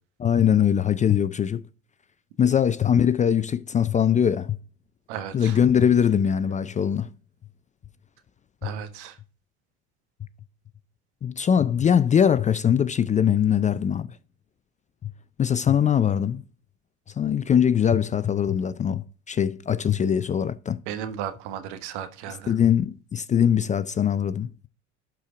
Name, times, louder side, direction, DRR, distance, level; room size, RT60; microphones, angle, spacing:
voice 1, 0.2-1.6 2.4-4.6 5.3-7.1 8.6-8.7 11.2-14.1 15.4-16.4 17.2-20.8 22.5-24.5, left 8 dB, 20° left, 0.4 m, -22 dB
voice 2, 5.1-5.6 8.6-9.2 20.9-22.5, right 9 dB, 75° right, 1.4 m, -35 dB
11.5 x 4.6 x 3.7 m
hypercardioid pair, 80°, 35 cm